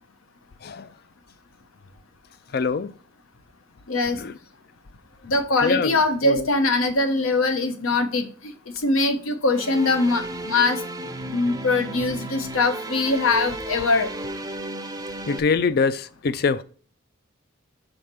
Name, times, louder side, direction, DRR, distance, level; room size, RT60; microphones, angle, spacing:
voice 1, 2.5-2.9 4.2-4.3 5.6-6.0 6.2-6.4 15.3-16.6, left 5 dB, 50° left, 0.4 m, -24 dB
voice 2, 3.9-4.2 5.2-8.3 8.8-10.8 11.3-14.1, left 3 dB, 80° left, 0.9 m, -22 dB
sound 1, 9.5-15.4, right 1 dB, 15° right, 0.5 m, -34 dB
5.0 x 4.2 x 5.8 m
head